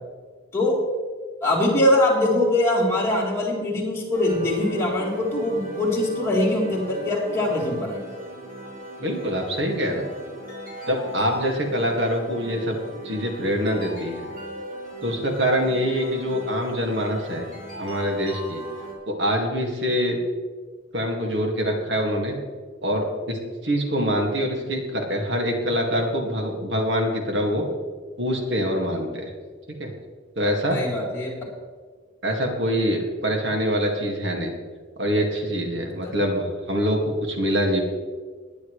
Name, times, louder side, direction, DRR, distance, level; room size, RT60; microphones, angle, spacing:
voice 1, 1.4-8.0 30.7-31.3 36.0-36.1, left 1 dB, 15° left, -6 dB, 3.7 m, -22 dB
sound 1, 4.1-18.9, right 1 dB, 45° right, 3.3 m, -38 dB
voice 2, 9.0-10.1 10.9-12.8 13.0-14.2 15.0-17.5 17.8-18.6 19.1-20.2 20.9-22.3 22.8-23.4 23.6-27.7 28.2-29.3 29.7-29.9 30.4-30.8 32.2-34.5 35.0-37.8, equal, 60° right, 1 dB, 2.1 m, -24 dB
20.0 x 10.5 x 3.2 m, 1.5 s
head